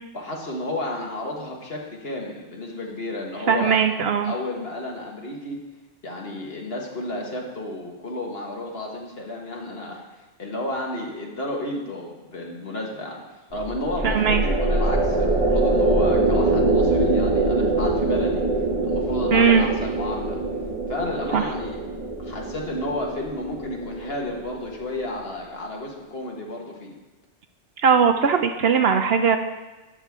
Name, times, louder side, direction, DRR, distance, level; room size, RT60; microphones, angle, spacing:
voice 1, 0.1-3.8 4.2-5.6 6.0-10.0 10.4-13.2 13.5-18.4 18.8-20.4 20.9-21.8 22.2-26.9, left 1 dB, 55° left, -1 dB, 1.7 m, -32 dB
voice 2, 3.5-4.3 14.0-14.4 19.3-19.7 21.3-21.4 27.8-29.4, right 6 dB, 65° right, 7 dB, 0.8 m, -19 dB
sound 1, 13.5-25.0, right 2 dB, 30° right, 1.8 m, -24 dB
11.5 x 8.1 x 3.6 m, 1.1 s
omnidirectional pair, 1.2 m